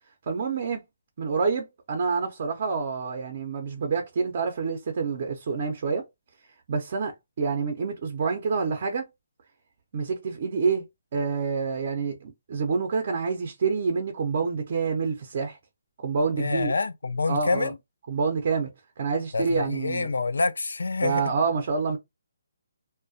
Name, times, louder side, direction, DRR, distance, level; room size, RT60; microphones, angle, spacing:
voice 1, 0.3-0.8 1.2-6.1 6.7-9.1 9.9-10.9 11.1-15.6 16.0-16.7 17.3-17.7 18.1-18.7 19.0-20.1 21.0-22.0, right 5 dB, 45° right, 0.5 m, -27 dB
voice 2, 16.4-17.8 19.3-21.2, left 3 dB, 85° left, 0.4 m, -27 dB
2.3 x 2.1 x 2.6 m
hypercardioid pair, 160°, 0 cm